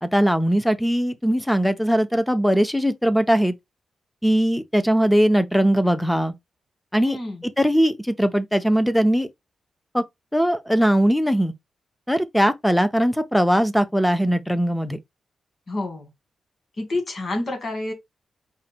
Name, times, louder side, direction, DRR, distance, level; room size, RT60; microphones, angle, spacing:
voice 1, 0.0-3.5 4.2-6.3 6.9-9.3 9.9-10.0 10.3-11.5 12.1-15.0, equal, ahead, 0.4 m, -20 dB
voice 2, 7.0-7.4 15.7-16.1 16.8-17.9, left 2 dB, 35° left, 1.6 m, -28 dB
4.9 x 2.1 x 4.2 m
wide cardioid pair, 180°, 0 cm